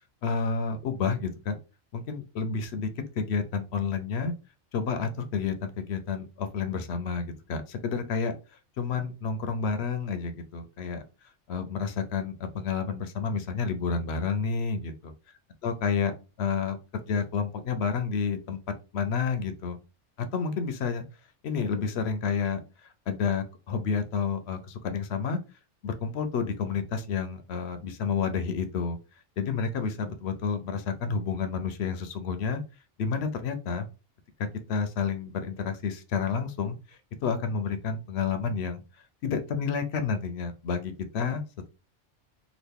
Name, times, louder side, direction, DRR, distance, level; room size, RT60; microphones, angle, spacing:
voice 1, 0.2-1.6 1.9-2.9 3.2-4.3 4.7-8.3 8.8-11.0 11.5-14.9 15.6-16.1 16.4-18.6 18.9-19.8 20.2-21.0 21.4-25.4 25.8-29.0 29.4-32.6 33.0-33.9 34.7-38.8 39.2-41.4, left 5 dB, 65° left, 9 dB, 0.8 m, -30 dB
3.0 x 2.4 x 3.5 m, 0.31 s
omnidirectional pair, 1.3 m